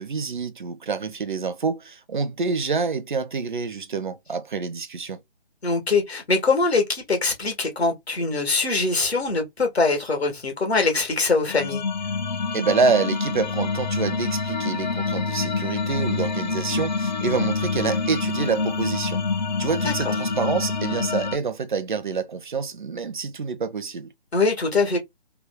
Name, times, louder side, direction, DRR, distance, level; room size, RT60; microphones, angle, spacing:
voice 1, 0.0-5.2 12.5-19.2 19.6-24.1, right 5 dB, 50° right, 0.5 m, -27 dB
voice 2, 5.6-11.8 19.8-19.9 24.3-25.0, left 3 dB, 70° left, 1.6 m, -22 dB
sound 1, 11.5-21.4, left 4 dB, 45° left, 0.5 m, -26 dB
3.3 x 2.2 x 3.5 m
figure-of-eight pair, 145°, 32 cm